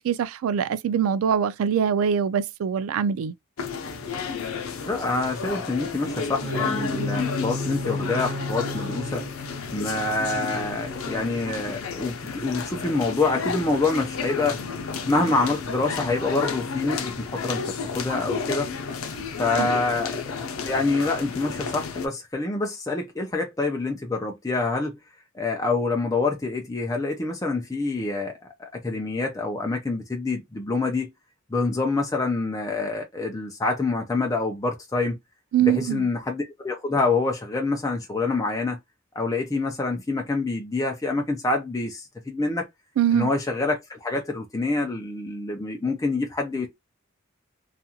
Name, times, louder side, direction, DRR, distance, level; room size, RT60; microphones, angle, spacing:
voice 1, 0.0-3.3 19.6-19.7 35.5-36.1 43.0-43.3, right 8 dB, 85° right, 0.3 m, -23 dB
sound 1, 3.6-22.1, left 5 dB, 90° left, 0.5 m, -32 dB
voice 2, 4.8-9.3 9.7-14.6 15.0-18.7 19.4-20.2 20.6-25.0 25.3-31.1 31.5-35.2 35.6-38.8 39.2-42.7 43.1-46.7, left 3 dB, 15° left, 0.4 m, -26 dB
sound 2, 6.3-12.2, left 1 dB, 65° right, 0.8 m, -35 dB
2.4 x 2.3 x 2.7 m
head